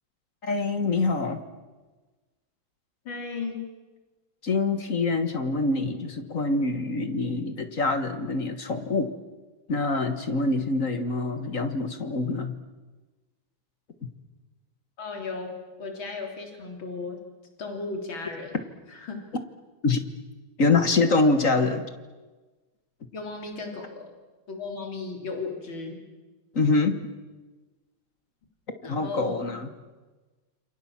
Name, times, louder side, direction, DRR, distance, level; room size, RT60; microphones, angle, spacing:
voice 1, 0.4-1.4 4.4-9.1 9.7-12.6 19.8-20.0 20.6-21.9 26.5-27.0 28.8-29.7, left 3 dB, 45° left, 8 dB, 1.8 m, -25 dB
voice 2, 3.1-3.7 15.0-17.2 17.6-18.6 18.9-19.2 23.1-24.1 24.5-26.0 28.8-29.3, left 4 dB, 80° left, 2 dB, 4.3 m, -35 dB
28.5 x 26.5 x 7.4 m, 1.3 s
omnidirectional pair, 2.1 m